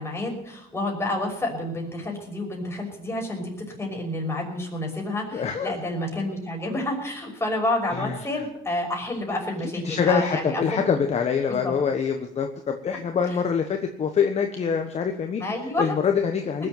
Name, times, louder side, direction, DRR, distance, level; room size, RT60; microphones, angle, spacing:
voice 1, 0.0-10.6 11.5-11.7 15.4-15.9, left 1 dB, 15° left, 0 dB, 5.8 m, -29 dB
voice 2, 5.3-5.7 7.9-8.2 9.8-15.4 15.8-16.7, left 6 dB, 40° left, 5 dB, 1.3 m, -25 dB
19.5 x 7.7 x 7.9 m, 0.80 s
cardioid pair, 110°, 17 cm